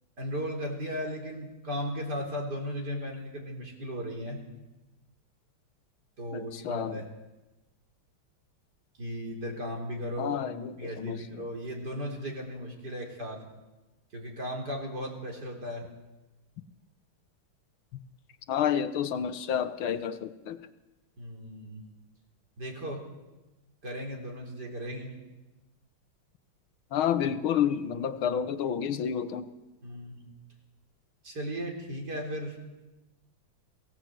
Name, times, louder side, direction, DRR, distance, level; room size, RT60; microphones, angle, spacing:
voice 1, 0.2-4.4 6.2-7.1 9.0-10.5 10.8-13.4 14.1-15.9 21.2-21.8 22.6-23.0 23.8-25.1 29.8-30.2 31.2-32.6, equal, 50° right, 4.6 m, -36 dB
voice 2, 6.3-6.9 10.2-11.2 18.5-20.6 26.9-29.5, left 8 dB, 75° left, 1.9 m, -29 dB
23.0 x 17.0 x 8.0 m
omnidirectional pair, 2.3 m